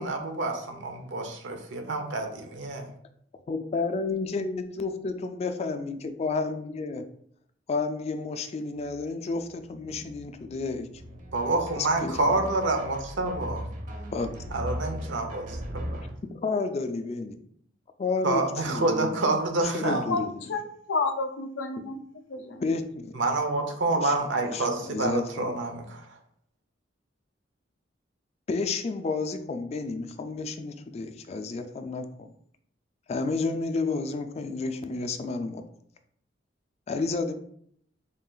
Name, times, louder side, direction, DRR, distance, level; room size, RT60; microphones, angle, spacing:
voice 1, 0.0-2.9 9.9-10.0 11.3-13.6 14.5-16.0 18.2-20.1 23.1-26.0, right 2 dB, 80° right, 4 dB, 0.8 m, -28 dB
voice 2, 3.5-7.1 7.7-10.8 11.7-12.4 14.1-14.3 16.2-17.4 18.0-19.2 19.7-20.4 22.6-23.2 24.0-24.1 24.5-25.5 28.5-32.3 33.1-35.6 36.9-37.3, left 3 dB, 35° left, 8 dB, 0.3 m, -31 dB
sound 1, 8.8-9.0 9.3-16.1, equal, 45° right, 0.6 m, -38 dB
voice 3, 20.1-20.6 20.9-22.6, left 3 dB, 85° left, 7 dB, 0.5 m, -30 dB
3.8 x 2.4 x 3.8 m, 0.66 s
head